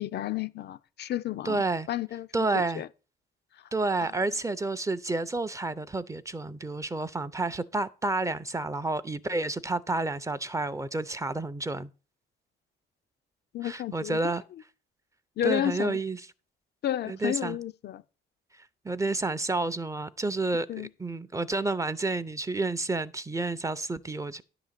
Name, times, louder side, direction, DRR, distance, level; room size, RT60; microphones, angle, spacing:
voice 1, 0.0-1.6 1.9-2.9 4.0-4.1 13.5-14.2 15.4-16.0 16.8-18.0 20.7-20.9, left 12 dB, 55° left, 0.4 m, -31 dB
voice 2, 1.4-1.9 2.3-2.8 3.7-11.9 13.6-14.4 15.4-16.2 17.1-17.6 18.8-24.4, right 2 dB, 15° right, 0.5 m, -30 dB
10.0 x 3.8 x 7.3 m
cardioid pair, 90°, 20 cm